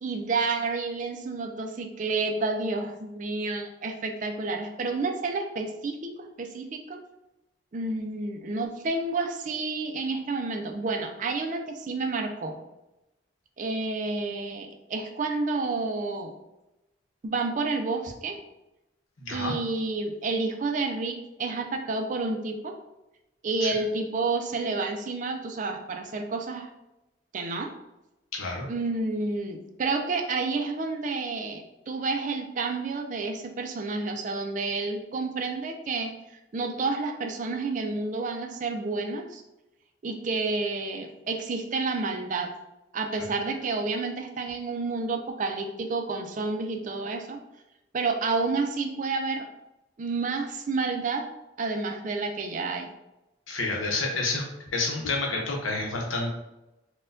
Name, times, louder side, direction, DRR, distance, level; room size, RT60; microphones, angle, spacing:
voice 1, 0.0-7.0 7.7-12.5 13.6-16.3 17.2-18.4 19.3-22.7 23.4-26.7 27.3-27.7 28.7-36.1 36.5-39.4 40.0-42.5 42.9-47.4 47.9-49.4 50.0-51.3 51.6-52.9, right 3 dB, 40° right, 4 dB, 0.3 m, -30 dB
voice 2, 19.2-19.5 23.6-23.7 28.3-28.7 53.5-54.5 54.7-56.3, left 3 dB, 85° left, 0 dB, 0.8 m, -29 dB
4.2 x 2.2 x 2.5 m, 0.93 s
head